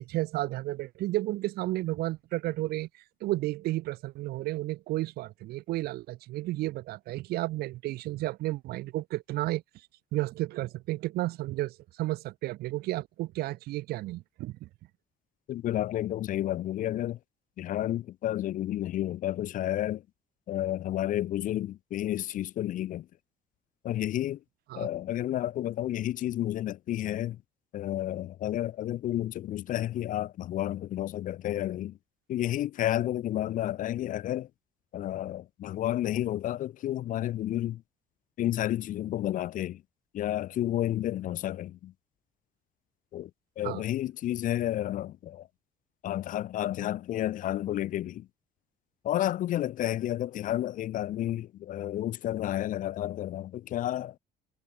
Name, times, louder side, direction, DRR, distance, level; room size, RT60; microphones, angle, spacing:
voice 1, 0.0-2.9 3.2-9.6 10.1-14.7 24.7-24.9 43.6-43.8, right 17 dB, 65° right, 0.4 m, -32 dB
voice 2, 15.5-17.2 17.6-20.0 20.5-23.1 23.8-24.4 24.7-27.4 27.7-32.0 32.3-34.5 34.9-37.8 38.4-39.8 40.1-41.9 43.1-43.3 43.6-45.5 46.0-48.3 49.0-54.2, left 13 dB, 50° left, 0.4 m, -31 dB
cardioid pair, 110°, 17 cm